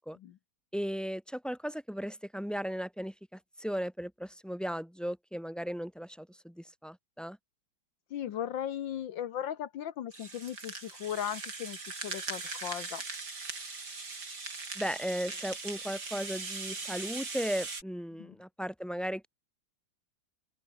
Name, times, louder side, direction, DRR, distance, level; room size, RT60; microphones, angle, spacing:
voice 1, 0.7-7.4 14.7-19.3, equal, ahead, 1.0 m, -36 dB
voice 2, 8.1-13.0 18.2-18.4, left 10 dB, 70° left, 1.6 m, -37 dB
Rattle (instrument), 10.1-17.8, right 3 dB, 55° right, 4.4 m, -40 dB
open air
omnidirectional pair, 2.2 m